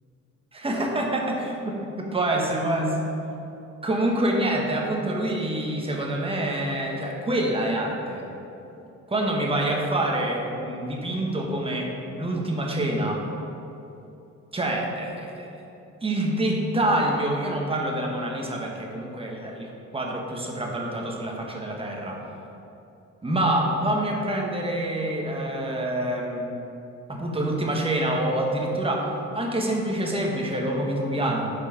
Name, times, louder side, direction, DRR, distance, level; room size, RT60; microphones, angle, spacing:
voice 1, 0.5-3.1 3.8-8.3 9.1-11.9 12.2-13.2 14.5-15.5 16.0-22.2 23.2-26.5 27.1-29.1 29.3-31.5, right 1 dB, 20° right, -1 dB, 1.3 m, -26 dB
6.5 x 4.8 x 5.8 m, 2.9 s
cardioid pair, 90°, 30 cm